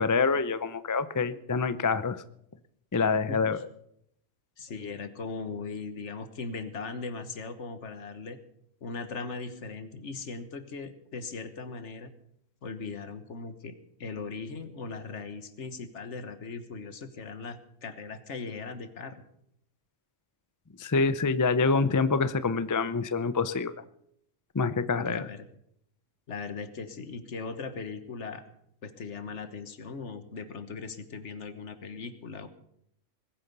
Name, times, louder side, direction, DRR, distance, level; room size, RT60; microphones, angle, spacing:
voice 1, 0.0-2.2 2.9-3.6 20.8-23.7 24.5-25.2, left 4 dB, 30° left, 13 dB, 0.3 m, -26 dB
voice 2, 3.3-3.6 4.6-8.4 8.8-12.1 12.6-19.2 24.9-25.5 26.3-28.4 28.8-32.5, left 4 dB, 65° left, 10 dB, 1.6 m, -39 dB
20.5 x 9.4 x 6.8 m, 0.74 s
omnidirectional pair, 1.3 m